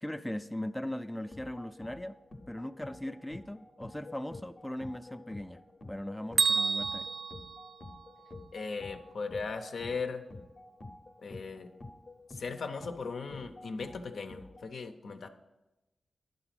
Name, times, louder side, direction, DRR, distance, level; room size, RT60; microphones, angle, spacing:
voice 1, 0.0-2.2 2.5-5.6 5.9-7.1, left 1 dB, 10° left, 9 dB, 0.3 m, -39 dB
sound 1, 1.3-14.7, left 2 dB, 40° left, 0.7 m, -49 dB
Bell, 6.4-8.4, right 4 dB, 75° right, 0.3 m, -31 dB
voice 2, 8.5-10.2 11.2-11.7 12.3-15.3, left 4 dB, 80° left, 7 dB, 0.5 m, -38 dB
10.5 x 4.0 x 5.9 m, 1.0 s
cardioid pair, 65°, 0 cm